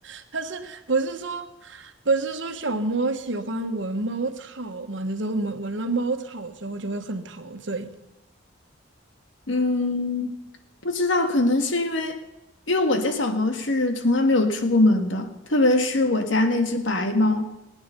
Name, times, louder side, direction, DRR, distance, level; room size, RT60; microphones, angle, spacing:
voice 1, 0.0-7.9, right 3 dB, 70° right, 1.3 m, -28 dB
voice 2, 9.5-10.4 10.8-12.2 12.7-17.5, left 2 dB, 75° left, 1.7 m, -22 dB
19.5 x 9.5 x 6.8 m
head